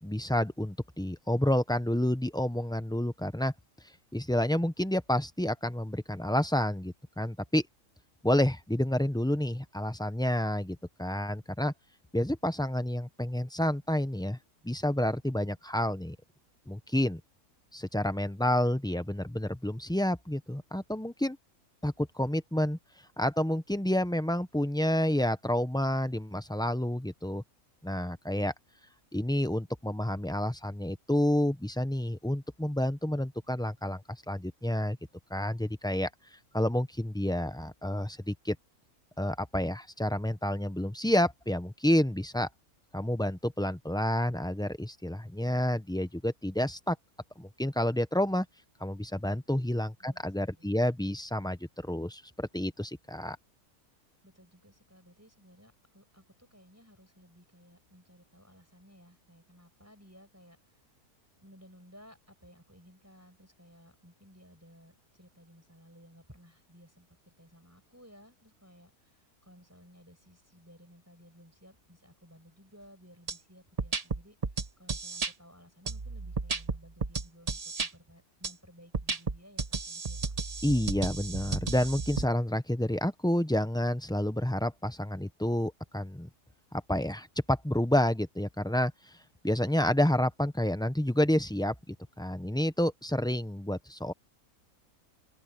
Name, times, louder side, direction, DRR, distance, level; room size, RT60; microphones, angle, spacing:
voice 1, 0.0-3.5 4.1-7.6 8.2-11.7 12.1-14.4 14.6-16.2 16.7-17.2 17.7-21.4 21.8-22.8 23.2-27.4 27.8-28.5 29.1-34.0 34.3-35.0 35.3-36.1 36.5-38.6 39.2-42.5 42.9-47.0 47.4-48.4 48.8-53.4 80.6-86.3 86.9-88.9 89.4-94.1, left 1 dB, 5° left, 0.4 m, -29 dB
voice 2, 54.2-60.8 61.4-80.2, equal, 10° right, 5.9 m, -57 dB
sound 1, 73.3-73.4 73.8-75.3 75.9-77.9 78.4-78.5 78.9-82.2, right 4 dB, 30° right, 0.9 m, -33 dB
open air
omnidirectional pair, 1.6 m